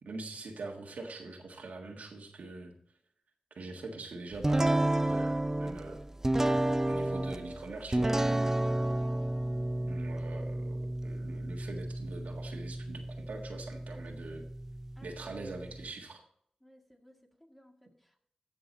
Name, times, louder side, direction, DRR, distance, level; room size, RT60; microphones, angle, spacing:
voice 1, 0.0-2.7 3.5-6.0 6.9-8.6 9.9-14.4 15.0-16.2, right 3 dB, 90° right, 1 dB, 1.6 m, -43 dB
sound 1, 4.4-15.9, right 1 dB, 20° right, 0.4 m, -32 dB
voice 2, 15.0-15.9 16.6-18.2, equal, 5° left, 2 dB, 1.9 m, -60 dB
14.5 x 6.1 x 4.1 m, 0.67 s
cardioid pair, 50°, 3 cm